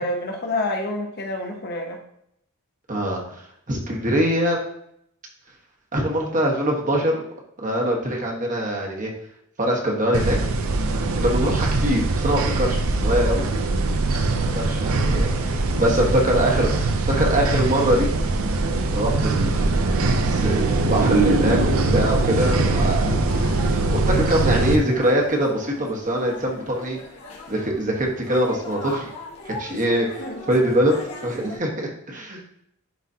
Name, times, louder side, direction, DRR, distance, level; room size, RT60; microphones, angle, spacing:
voice 1, 0.0-2.0 30.2-30.3, left 2 dB, 50° left, 2 dB, 1.0 m, -27 dB
voice 2, 2.9-3.4 3.7-4.6 5.9-7.2 7.6-9.1 9.6-10.4 11.1-13.5 14.5-18.1 18.9-19.7 20.2-23.2 23.9-27.0 27.5-29.1 29.4-30.9 31.2-32.4, right 1 dB, 35° right, -1 dB, 1.4 m, -23 dB
sound 1, 10.1-24.8, right 2 dB, 70° right, 0.6 m, -22 dB
sound 2, 23.3-31.6, left 2 dB, 80° left, 1.6 m, -40 dB
11.0 x 4.1 x 2.8 m, 0.74 s
head